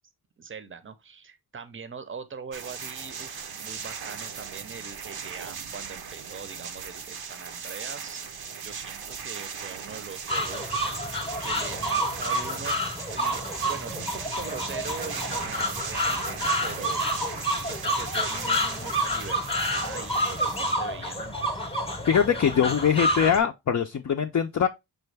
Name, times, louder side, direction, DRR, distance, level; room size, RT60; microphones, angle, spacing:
voice 1, 0.4-8.2 8.6-10.8 11.4-17.1 17.5-21.6, right 6 dB, 35° right, 0.6 m, -42 dB
sound 1, 2.5-20.7, right 6 dB, 75° right, 0.6 m, -38 dB
sound 2, 10.3-23.4, equal, 15° left, 0.8 m, -29 dB
voice 2, 22.1-24.7, left 7 dB, 45° left, 0.4 m, -22 dB
6.1 x 2.3 x 3.2 m
wide cardioid pair, 85°, 38 cm